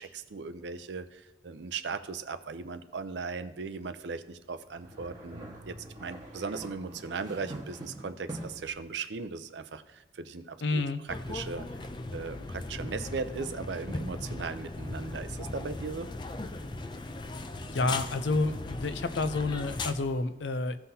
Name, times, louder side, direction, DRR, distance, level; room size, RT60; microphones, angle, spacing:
voice 1, 0.0-11.7 12.1-16.1, right 4 dB, 70° right, 10 dB, 0.5 m, -38 dB
sound 1, 4.7-8.7, right 1 dB, 20° right, 1.4 m, -44 dB
voice 2, 10.6-11.0 17.7-20.8, left 3 dB, 75° left, 10 dB, 0.6 m, -29 dB
sound 2, 11.1-19.9, left 2 dB, 25° left, 0.4 m, -38 dB
16.0 x 5.7 x 2.8 m, 1.2 s
head